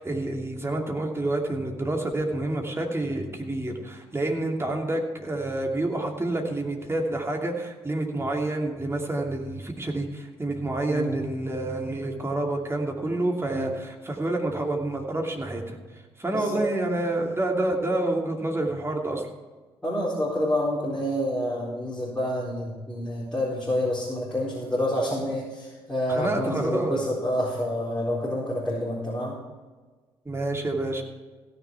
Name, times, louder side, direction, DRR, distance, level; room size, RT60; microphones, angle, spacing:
voice 1, 0.0-15.8 16.2-19.3 26.1-26.9 30.2-31.0, right 2 dB, 20° right, 1 dB, 2.7 m, -28 dB
voice 2, 10.9-11.2 13.5-13.7 16.3-16.6 19.8-29.4, left 1 dB, 5° left, -8 dB, 4.2 m, -28 dB
16.0 x 6.9 x 4.7 m, 1.3 s
hypercardioid pair, 45°, 13 cm